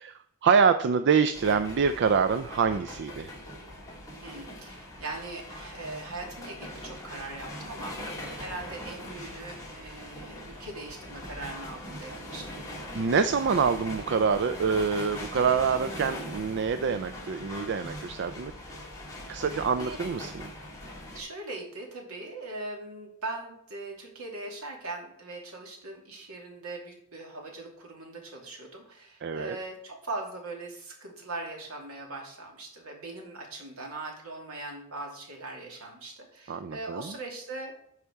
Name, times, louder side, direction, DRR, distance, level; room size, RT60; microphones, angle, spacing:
voice 1, 0.0-3.3 12.9-18.5 19.3-20.5 29.2-29.6 36.5-37.1, right 6 dB, 55° right, 10 dB, 0.4 m, -26 dB
sound 1, 1.3-21.2, left 1 dB, 15° left, 2.5 m, -41 dB
voice 2, 4.2-7.9 8.3-12.6 19.5-20.0 21.1-37.7, right 2 dB, 75° right, 0 dB, 2.5 m, -40 dB
12.5 x 5.0 x 4.6 m, 0.73 s
head